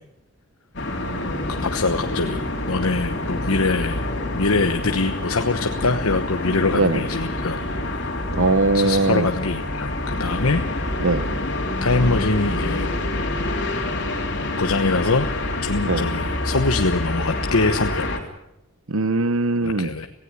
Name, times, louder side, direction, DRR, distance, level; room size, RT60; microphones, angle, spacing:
sound 1, 0.7-18.2, left 2 dB, 50° left, 3.5 m, -27 dB
voice 1, 1.6-7.6 8.7-10.6 11.8-12.9 14.6-15.3 15.6-18.1 19.6-20.1, left 3 dB, 80° left, 6 dB, 1.1 m, -23 dB
voice 2, 8.3-9.3 11.0-11.3 15.8-16.1 18.9-19.9, right 3 dB, 70° right, 14 dB, 1.1 m, -20 dB
18.0 x 16.5 x 9.6 m, 0.87 s
head